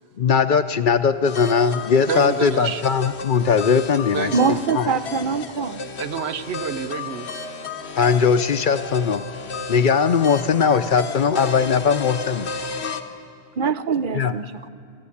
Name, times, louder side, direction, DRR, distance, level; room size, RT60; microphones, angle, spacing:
voice 1, 0.2-4.3 4.7-4.9 8.0-9.2 9.7-12.5 14.1-14.3, left 6 dB, 55° left, 11 dB, 0.8 m, -19 dB
sound 1, 1.2-13.0, left 4 dB, 85° left, 1.4 m, -33 dB
voice 2, 2.1-2.8 4.1-4.6 6.0-7.4, right 7 dB, 80° right, 11 dB, 1.1 m, -28 dB
voice 3, 4.3-5.9 13.6-14.7, right 5 dB, 55° right, 12 dB, 0.9 m, -23 dB
27.0 x 14.0 x 8.5 m, 2.3 s
omnidirectional pair, 1.1 m